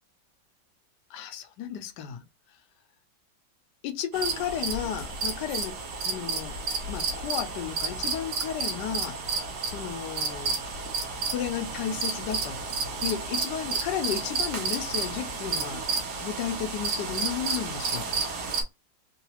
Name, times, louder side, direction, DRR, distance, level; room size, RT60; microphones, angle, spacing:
voice 1, 1.1-2.2 3.8-5.7 6.0-6.6 6.9-9.2 9.6-10.6 11.3-12.6 13.0-15.8 16.2-18.1, left 9 dB, 70° left, 1.2 m, -33 dB
sound 1, 4.1-18.6, right 4 dB, 60° right, 1.4 m, -31 dB
3.9 x 2.3 x 2.8 m
omnidirectional pair, 2.1 m